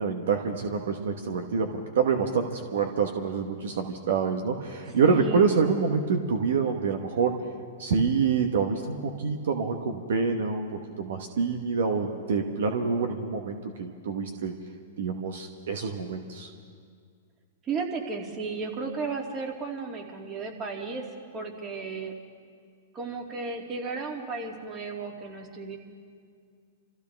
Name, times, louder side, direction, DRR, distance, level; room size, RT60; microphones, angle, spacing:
voice 1, 0.0-7.4 7.8-14.5 15.0-16.5, right 5 dB, 70° right, 4 dB, 1.3 m, -27 dB
voice 2, 5.0-5.5 17.6-21.0 21.3-22.1 22.9-25.8, right 4 dB, 30° right, 0 dB, 2.7 m, -34 dB
27.5 x 15.0 x 3.5 m, 2.1 s
hypercardioid pair, 120°, 0 cm